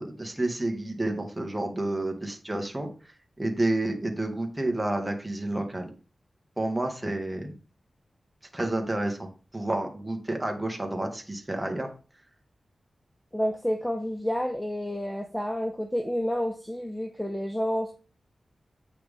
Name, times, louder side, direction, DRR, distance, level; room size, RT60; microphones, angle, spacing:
voice 1, 0.0-2.9 3.4-5.9 6.6-7.5 8.5-11.9, right 1 dB, 10° right, 3 dB, 1.7 m, -30 dB
voice 2, 13.3-17.9, equal, 5° left, 5 dB, 0.7 m, -29 dB
8.1 x 6.1 x 3.6 m, 0.35 s
wide cardioid pair, 120°, 0 cm